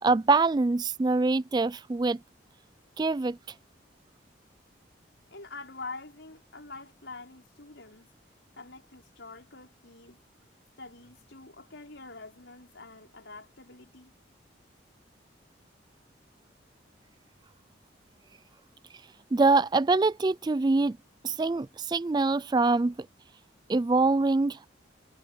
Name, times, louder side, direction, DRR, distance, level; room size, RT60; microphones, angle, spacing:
voice 1, 0.0-2.2 3.0-3.4 19.3-21.0 21.2-22.9 23.7-24.7, right 3 dB, 20° right, 0.3 m, -24 dB
voice 2, 5.3-8.1 8.5-10.2 10.8-14.1, left 3 dB, 75° left, 5.5 m, -45 dB
head